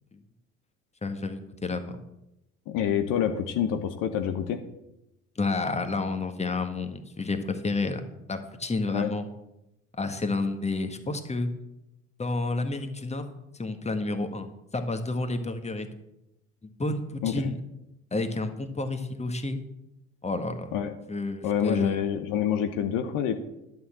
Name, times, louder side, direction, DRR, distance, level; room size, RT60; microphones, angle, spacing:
voice 1, 1.0-2.0 5.3-8.0 8.3-9.3 10.0-11.5 12.2-13.3 13.5-14.5 14.7-15.9 16.6-17.6 18.1-19.6 20.2-20.7 21.1-22.0, left 3 dB, 20° left, 8 dB, 1.6 m, -30 dB
voice 2, 2.7-4.6 8.9-9.1 17.2-17.5 20.7-20.9 21.4-23.4, left 9 dB, 60° left, 7 dB, 1.2 m, -27 dB
11.0 x 6.6 x 7.3 m, 0.88 s
hypercardioid pair, 55°, 36 cm